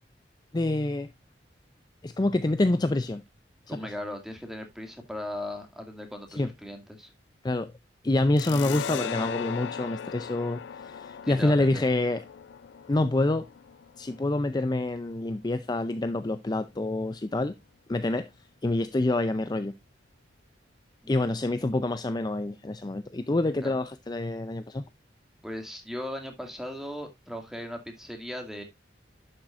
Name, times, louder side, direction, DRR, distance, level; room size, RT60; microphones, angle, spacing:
voice 1, 0.5-1.1 2.0-3.2 3.7-3.8 6.4-6.5 7.4-7.7 8.0-12.2 12.9-13.5 14.0-17.5 17.9-18.3 18.6-19.7 21.1-24.8, left 2 dB, 25° left, 0.5 m, -27 dB
voice 2, 3.7-7.1 11.2-11.8 21.0-21.4 23.6-23.8 25.4-28.6, left 1 dB, 5° right, 2.2 m, -38 dB
sound 1, 8.4-15.5, left 7 dB, 90° left, 0.4 m, -39 dB
11.0 x 7.4 x 2.5 m
head